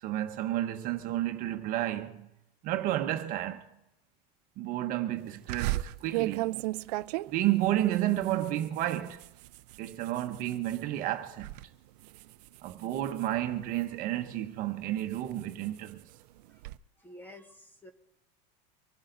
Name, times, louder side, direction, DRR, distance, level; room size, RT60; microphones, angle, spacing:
voice 1, 0.0-2.3 2.6-3.6 4.6-6.6 7.3-9.3 9.8-11.5 12.6-16.0, right 13 dB, 45° right, 1.2 m, -31 dB
sound 1, 5.5-10.9 11.2-11.6 12.0-14.0 14.6-16.8, right 18 dB, 75° right, 0.6 m, -36 dB
voice 2, 17.0-17.9, left 1 dB, 10° left, 1.4 m, -49 dB
25.0 x 11.5 x 4.0 m
supercardioid pair, 155°, 21 cm